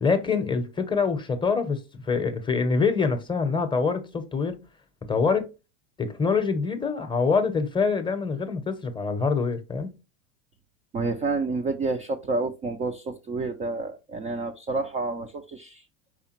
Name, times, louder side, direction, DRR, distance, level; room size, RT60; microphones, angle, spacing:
voice 1, 0.0-4.6 5.1-5.5 6.0-9.9, left 5 dB, 15° left, 0.7 m, -25 dB
voice 2, 10.9-15.8, right 3 dB, 20° right, 0.3 m, -29 dB
5.0 x 3.5 x 2.9 m
supercardioid pair, 115°, 38 cm